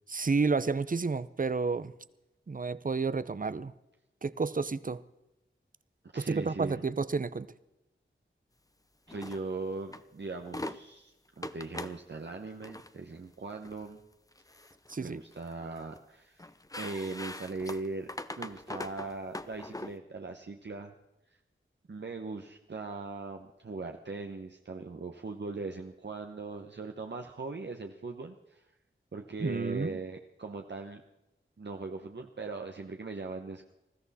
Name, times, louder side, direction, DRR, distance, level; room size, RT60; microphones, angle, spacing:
voice 1, 0.1-1.9 2.5-3.7 4.2-5.0 6.2-7.5 14.9-15.2 29.4-30.0, right 4 dB, 40° right, 17 dB, 0.7 m, -30 dB
voice 2, 6.1-6.8 9.1-14.0 14.5-14.7 15.0-16.5 16.7-20.9 21.9-28.6 29.1-31.0 31.6-33.7, right 3 dB, 60° right, 4 dB, 1.1 m, -40 dB
sound 1, 9.1-9.4 9.9-10.0 10.4-10.8 11.4-12.0 12.6-12.9 13.6-13.8 14.3-15.0 15.3-16.0 16.4-19.9, left 1 dB, 15° left, 0.8 m, -41 dB
20.0 x 14.5 x 4.2 m, 0.93 s
wide cardioid pair, 65°, 21 cm